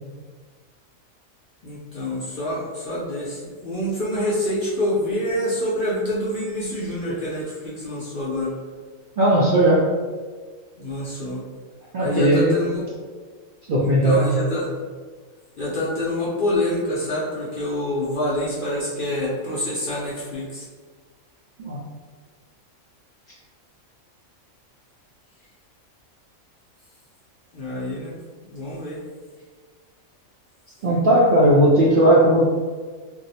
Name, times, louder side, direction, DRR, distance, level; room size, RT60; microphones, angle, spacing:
voice 1, 1.6-8.5 10.8-11.4 12.0-12.8 13.8-14.7 15.6-20.6 27.5-28.2 28.5-29.0, left 1 dB, 55° left, -7 dB, 0.6 m, -26 dB
voice 2, 9.2-9.8 11.9-12.5 13.7-14.3 21.6-21.8 30.8-32.4, right 1 dB, 60° right, -6 dB, 0.5 m, -17 dB
2.6 x 2.0 x 4.0 m, 1.4 s
omnidirectional pair, 1.4 m